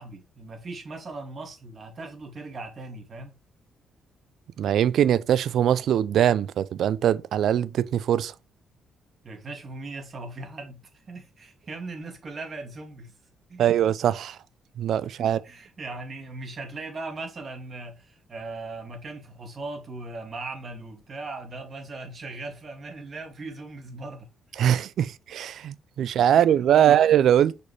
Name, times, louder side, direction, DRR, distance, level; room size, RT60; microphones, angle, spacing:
voice 1, 0.0-3.3 9.2-13.2 13.5-13.7 15.2-24.3 26.2-26.5 26.7-26.9, right 3 dB, 45° right, 2.4 m, -39 dB
voice 2, 4.6-8.3 13.6-14.4 14.8-15.4 24.6-27.6, right 10 dB, 70° right, 0.5 m, -22 dB
6.4 x 5.2 x 3.3 m
cardioid pair, 90°, 0 cm